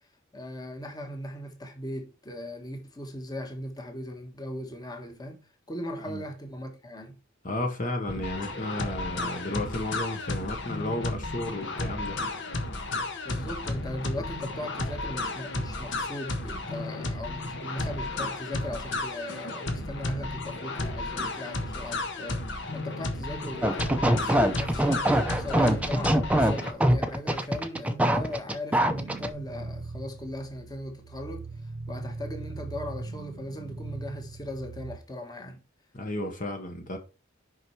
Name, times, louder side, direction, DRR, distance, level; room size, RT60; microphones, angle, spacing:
voice 1, 0.3-7.2 13.2-31.5 31.9-35.6, left 1 dB, 20° left, 1.4 m, -38 dB
voice 2, 7.4-12.2 35.9-37.0, left 1 dB, 40° left, 1.2 m, -33 dB
sound 1, 8.1-26.7, left 2 dB, 65° left, 1.4 m, -33 dB
sound 2, 23.6-29.3, right 1 dB, 5° right, 0.7 m, -23 dB
sound 3, 28.8-35.0, right 3 dB, 60° right, 0.6 m, -40 dB
6.2 x 5.6 x 4.7 m
head